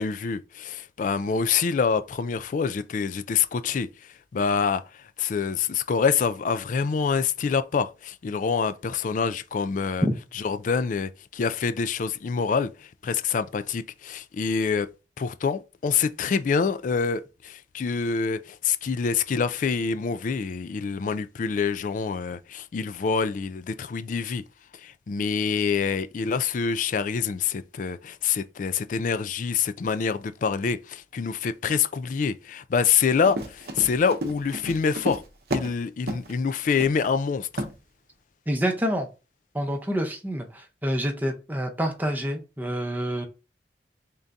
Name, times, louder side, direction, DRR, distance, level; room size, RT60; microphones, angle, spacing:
voice 1, 0.0-10.0 10.4-14.9 15.2-24.4 24.7-35.2 35.5-37.6, left 6 dB, 45° left, 0.3 m, -26 dB
Run, 33.1-35.8 36.1-36.3 36.8-37.1 37.6-37.7, right 1 dB, 60° right, 0.7 m, -32 dB
voice 2, 38.5-39.1 39.5-43.2, equal, 10° right, 0.7 m, -27 dB
3.7 x 2.7 x 3.4 m
head